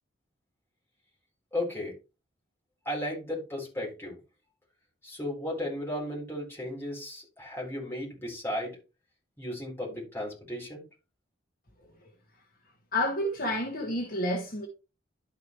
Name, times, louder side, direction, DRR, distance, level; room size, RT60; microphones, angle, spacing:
voice 1, 1.5-1.9 2.9-4.2 5.0-8.8 9.4-10.8, left 1 dB, 15° left, 4.0 m, -35 dB
voice 2, 12.9-14.7, left 1 dB, 50° left, 1.6 m, -29 dB
12.0 x 4.8 x 3.1 m
head